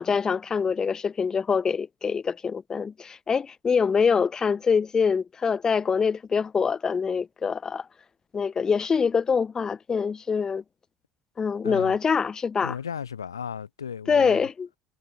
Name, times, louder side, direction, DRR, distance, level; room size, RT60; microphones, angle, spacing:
voice 1, 0.0-7.8 8.3-10.6 11.4-12.8 14.1-14.7, left 6 dB, 30° left, 2.7 m, -24 dB
voice 2, 11.6-12.0 12.6-14.5, left 7 dB, 90° left, 3.6 m, -35 dB
hypercardioid pair, 65°, 2 cm